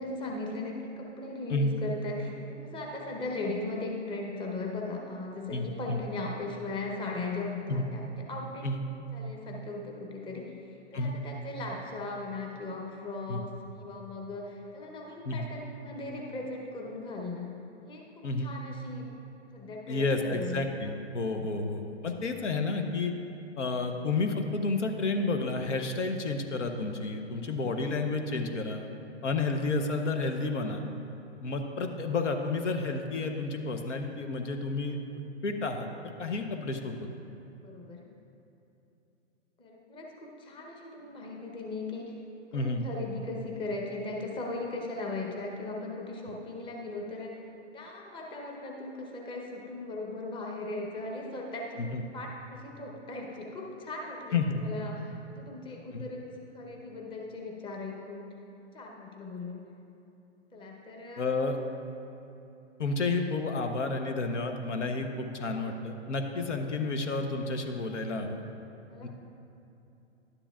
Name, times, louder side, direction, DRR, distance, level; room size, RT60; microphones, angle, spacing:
voice 1, 0.0-8.7 9.1-13.5 13.7-17.5 17.8-19.1 19.5-20.6 21.3-21.5 27.3-27.8 37.6-38.0 39.6-42.1 42.5-47.4 47.7-51.8 52.1-56.3 56.5-58.3 58.7-59.6 60.5-61.4 68.9-69.1, left 2 dB, 15° left, 0 dB, 0.9 m, -38 dB
voice 2, 5.5-6.0 7.7-7.9 8.6-8.8 10.9-11.2 13.3-13.4 15.2-15.5 18.2-18.5 19.9-23.1 23.6-28.9 29.2-30.8 31.4-35.0 35.4-35.9 36.2-36.9 42.5-42.9 51.8-52.0 54.3-54.6 55.9-56.0 61.2-61.6 62.8-68.4 69.0-69.1, left 3 dB, 80° left, 5 dB, 0.9 m, -31 dB
11.5 x 9.8 x 2.4 m, 2.9 s
hypercardioid pair, 125°, 36 cm